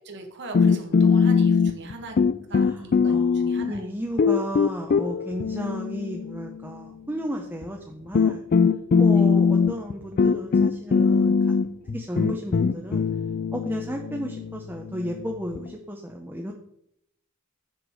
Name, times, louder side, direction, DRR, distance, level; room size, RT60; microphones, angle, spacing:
voice 1, 0.0-2.2 2.5-3.8, right 2 dB, 55° right, 3 dB, 1.4 m, -40 dB
sound 1, 0.5-1.9 2.2-3.8 4.2-6.6 7.6-7.7 8.1-15.7, left 5 dB, 40° left, 0.3 m, -21 dB
voice 2, 2.6-8.4 9.0-11.6 11.9-13.1 13.5-16.5, equal, 10° right, 1 dB, 0.8 m, -34 dB
7.9 x 6.0 x 4.9 m, 0.75 s
head